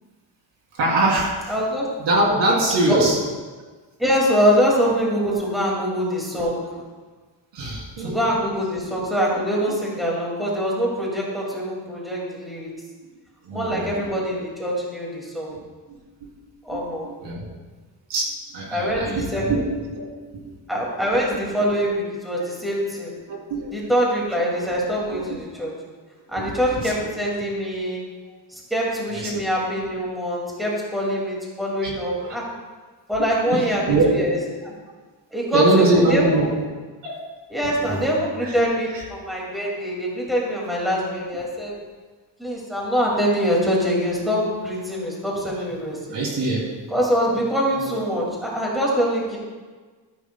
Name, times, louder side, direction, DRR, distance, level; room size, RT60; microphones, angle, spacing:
voice 1, 0.7-1.5 2.0-3.2 7.5-8.2 9.7-9.8 13.4-14.1 15.9-16.3 16.7-17.5 18.1-20.1 20.3-20.6 21.1-21.2 23.2-23.7 24.6-24.7 25.2-25.4 26.4-27.1 29.1-29.4 30.5-30.7 31.8-31.9 32.2-32.3 33.2-34.4 35.5-36.5 37.0-37.2 37.6-38.1 38.4-38.6 38.9-39.0 41.3-41.4 46.1-46.7 47.8-47.9, right 2 dB, 70° right, -3 dB, 3.1 m, -23 dB
voice 2, 1.5-1.9 2.9-3.0 4.0-6.8 8.0-12.7 13.5-15.6 16.6-17.1 18.7-19.4 20.7-23.1 23.7-25.7 26.3-28.0 28.5-32.4 33.1-34.4 34.6-34.7 35.3-36.4 37.5-41.7 42.4-46.2 46.9-49.4, equal, ahead, -4 dB, 2.2 m, -24 dB
13.5 x 11.0 x 2.2 m, 1.4 s
cardioid pair, 155°, 44 cm